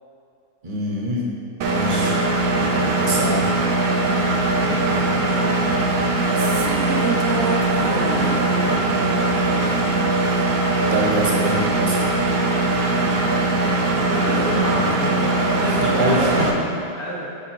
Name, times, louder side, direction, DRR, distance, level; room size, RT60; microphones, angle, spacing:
voice 1, 0.6-1.2 1.6-2.2 3.0-3.4 10.8-12.0 14.8-14.9 15.7-16.7, right 1 dB, 40° right, -4 dB, 1.1 m, -25 dB
Engine, 1.6-16.5, right 2 dB, 80° right, 1.1 m, -20 dB
voice 2, 2.6-3.4 4.5-5.8 7.7-9.1 12.6-13.2 13.9-17.4, equal, 5° left, -7 dB, 1.0 m, -30 dB
sound 1, 6.2-10.6, right 4 dB, 60° right, 0.6 m, -30 dB
8.9 x 3.2 x 4.5 m, 2.5 s
omnidirectional pair, 1.5 m